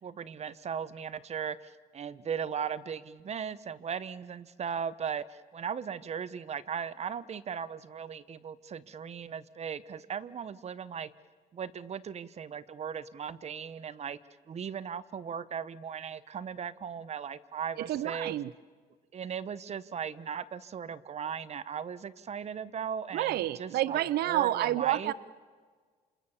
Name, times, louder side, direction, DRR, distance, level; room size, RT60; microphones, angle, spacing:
voice 1, 0.0-11.1 11.5-14.2 14.5-18.3 19.1-25.1, right 7 dB, 40° right, 17 dB, 1.1 m, -37 dB
voice 2, 17.8-18.5 23.1-25.1, right 14 dB, 70° right, 18 dB, 0.7 m, -29 dB
28.0 x 27.5 x 7.2 m, 1.5 s
cardioid pair, 110°, 17 cm